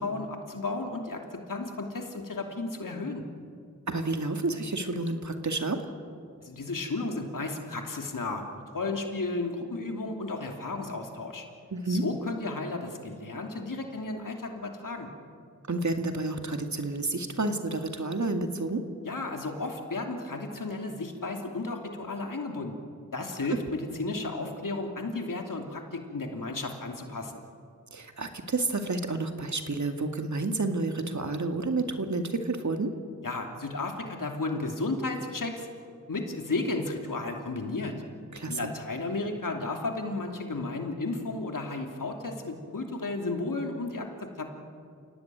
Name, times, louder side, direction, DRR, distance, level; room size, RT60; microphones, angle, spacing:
voice 1, 0.0-3.2 6.4-11.4 11.9-15.1 19.0-22.8 23.1-27.4 33.2-35.7 36.1-37.9 38.4-44.4, left 3 dB, 85° left, 3 dB, 2.9 m, -33 dB
voice 2, 3.9-5.9 11.7-12.0 15.7-18.8 27.9-32.9 38.3-38.7, right 3 dB, 65° right, 5 dB, 2.2 m, -30 dB
29.0 x 17.5 x 9.2 m, 2.4 s
wide cardioid pair, 65°, 31 cm